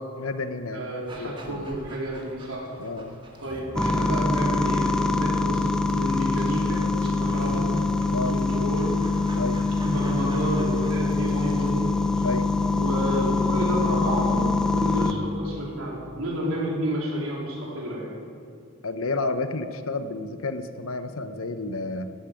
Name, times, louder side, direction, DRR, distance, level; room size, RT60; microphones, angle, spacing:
voice 1, 0.2-0.9 1.2-1.6 2.8-3.2 8.1-8.3 9.4-9.6 12.2-12.5 18.8-22.1, left 3 dB, 80° left, 10 dB, 0.9 m, -30 dB
voice 2, 0.7-2.7 3.4-7.8 8.3-9.0 9.8-12.3 12.7-18.1, right 1 dB, 85° right, -3 dB, 3.7 m, -30 dB
Dog, 1.1-11.8, right 1 dB, 25° right, 1.7 m, -47 dB
sound 1, 3.8-15.1, left 3 dB, 5° left, 0.5 m, -24 dB
16.5 x 13.0 x 5.2 m, 2.4 s
head